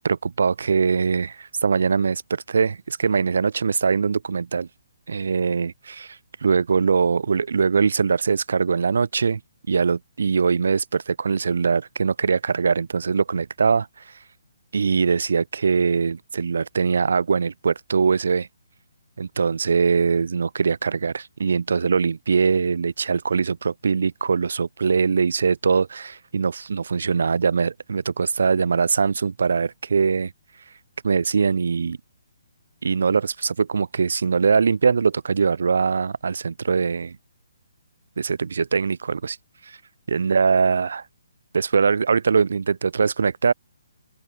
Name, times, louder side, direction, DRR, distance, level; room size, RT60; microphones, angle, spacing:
voice 1, 0.0-4.7 5.1-9.4 9.7-13.9 14.7-18.5 19.2-30.3 31.0-32.0 32.8-37.2 38.2-39.4 39.7-39.8 40.1-41.0 41.5-43.5, right 5 dB, 70° right, 2.1 m, -22 dB
open air
hypercardioid pair, 165°, 0 cm